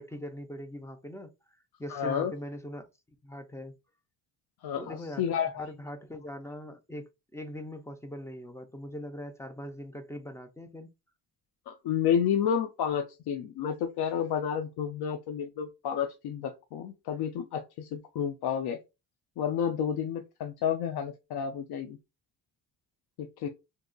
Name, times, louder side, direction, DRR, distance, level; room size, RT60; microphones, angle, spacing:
voice 1, 0.0-1.3 1.8-2.9 3.2-3.8 4.8-5.3 5.6-10.9, left 1 dB, 10° left, 0.3 m, -41 dB
voice 2, 1.9-2.3 4.6-5.7 11.7-18.8 19.4-22.0 23.2-23.5, left 8 dB, 80° left, 0.5 m, -30 dB
2.8 x 2.3 x 3.7 m
cardioid pair, 130°, 38 cm